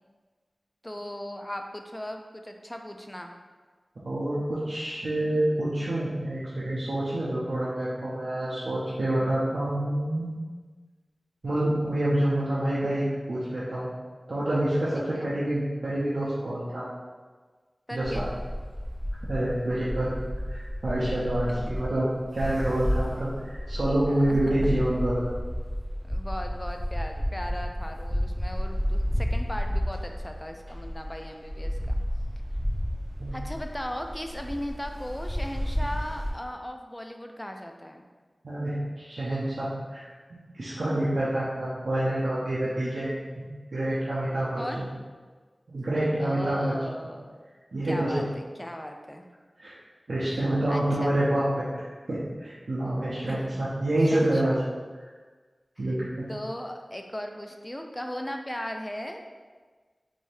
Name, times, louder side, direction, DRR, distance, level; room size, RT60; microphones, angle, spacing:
voice 1, 0.8-3.3 7.1-7.3 15.1-15.3 17.9-18.3 21.5-21.7 24.1-24.7 26.1-32.0 33.3-38.1 44.6-44.8 46.2-47.4 47.8-49.3 50.3-51.2 53.2-53.5 54.1-54.6 55.8-55.9 56.3-59.2, equal, 15° left, 4 dB, 0.3 m, -38 dB
voice 2, 4.0-10.3 11.4-13.9 14.3-16.9 17.9-18.2 19.2-20.1 20.5-25.3 33.2-33.3 38.4-43.1 43.7-44.8 45.7-46.7 47.7-48.1 49.6-49.7 50.1-54.6 55.8-56.2, right 1 dB, 90° right, -10 dB, 0.6 m, -27 dB
sound 1, 18.0-36.3, equal, 10° right, 0.8 m, -31 dB
3.3 x 2.6 x 3.3 m, 1.4 s
wide cardioid pair, 60°, 0 cm